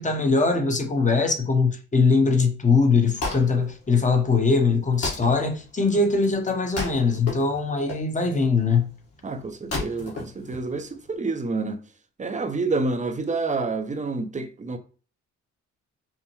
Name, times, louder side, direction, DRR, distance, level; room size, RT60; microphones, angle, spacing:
voice 1, 0.0-8.9, left 4 dB, 25° left, 1.0 m, -21 dB
Wood, 2.8-11.1, left 3 dB, 55° left, 1.7 m, -35 dB
voice 2, 9.2-11.8 12.2-14.8, right 3 dB, 25° right, 0.7 m, -28 dB
5.5 x 2.1 x 3.1 m
cardioid pair, 90°, 30 cm